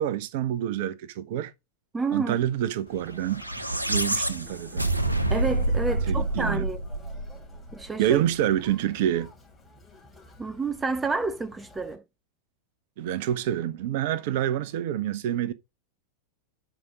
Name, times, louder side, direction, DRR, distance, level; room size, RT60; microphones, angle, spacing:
voice 1, 0.0-1.5 2.1-4.8 6.1-6.7 8.0-9.3 13.0-15.5, right 11 dB, 50° right, 0.9 m, -27 dB
voice 2, 1.9-2.4 5.3-6.8 7.7-8.2 10.4-12.0, right 4 dB, 15° right, 0.6 m, -29 dB
Conversation, 2.9-11.9, left 2 dB, 5° left, 3.4 m, -51 dB
sound 1, 3.2-7.6, right 2 dB, 85° right, 1.0 m, -27 dB
11.0 x 5.1 x 3.8 m
figure-of-eight pair, 90°, 0 cm